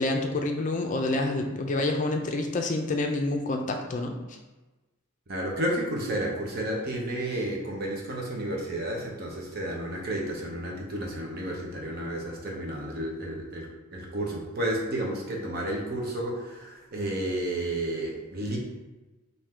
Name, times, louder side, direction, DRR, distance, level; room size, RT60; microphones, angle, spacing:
voice 1, 0.0-4.4, left 2 dB, 40° left, 4 dB, 0.4 m, -28 dB
voice 2, 5.3-13.7 13.9-18.6, right 1 dB, 50° right, -1 dB, 0.9 m, -31 dB
3.7 x 2.7 x 4.3 m, 1.1 s
head